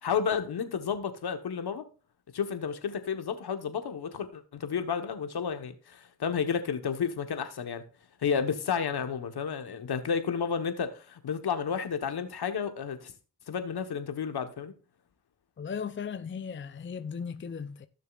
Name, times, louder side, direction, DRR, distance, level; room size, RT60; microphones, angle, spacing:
voice 1, 0.0-1.8 2.3-7.8 8.2-13.1 13.5-14.7, left 6 dB, 70° left, 1.3 m, -31 dB
voice 2, 15.6-17.9, left 6 dB, 30° left, 0.6 m, -37 dB
15.5 x 6.7 x 2.5 m
cardioid pair, 70°, 40 cm